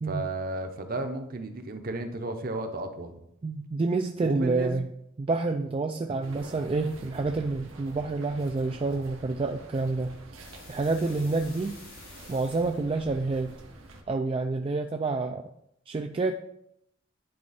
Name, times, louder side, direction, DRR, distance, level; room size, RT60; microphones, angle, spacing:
voice 1, 0.1-3.2 4.2-4.8, right 2 dB, 45° right, 7 dB, 0.8 m, -33 dB
voice 2, 3.4-4.9 5.2-10.2 10.7-11.8 12.3-13.6 14.1-15.5 15.9-16.3, right 3 dB, 25° right, 4 dB, 0.3 m, -28 dB
sound 1, 6.2-14.0, right 1 dB, 90° right, 1.2 m, -47 dB
sound 2, 10.4-12.8, left 3 dB, 90° left, 3.0 m, -50 dB
10.0 x 4.3 x 4.1 m, 0.75 s
head